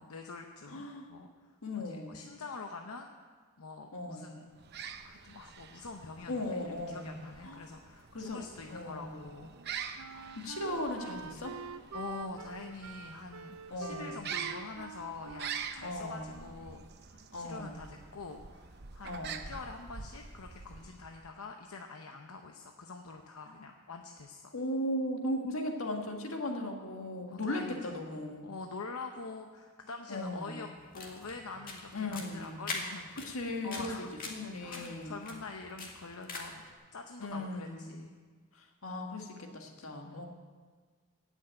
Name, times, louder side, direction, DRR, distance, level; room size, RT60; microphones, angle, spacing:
voice 1, 0.0-1.5 1.7-3.1 3.6-4.5 5.0-9.5 11.9-24.5 27.3-27.8 28.4-30.7 30.9-33.4 33.6-34.1 34.6-36.6 36.9-38.1 40.0-40.2, left 4 dB, 90° left, 4 dB, 0.8 m, -45 dB
voice 2, 0.7-1.1 1.6-2.2 3.9-4.4 6.3-7.6 8.1-8.4 8.7-9.3 10.1-11.6 13.7-14.3 15.8-16.4 17.3-17.8 19.0-19.5 23.4-23.5 24.5-28.5 30.1-30.7 31.9-32.6 33.2-33.9 34.3-35.3 37.2-37.9 38.5-40.3, left 1 dB, 75° left, 2 dB, 1.8 m, -37 dB
sound 1, 4.5-21.3, right 7 dB, 50° right, 0.8 m, -46 dB
Wind instrument woodwind instrument, 9.5-16.8, right 6 dB, 75° right, 0.5 m, -47 dB
sound 2, 30.8-36.7, left 3 dB, 40° left, 2.1 m, -44 dB
15.5 x 6.4 x 8.8 m, 1.5 s
head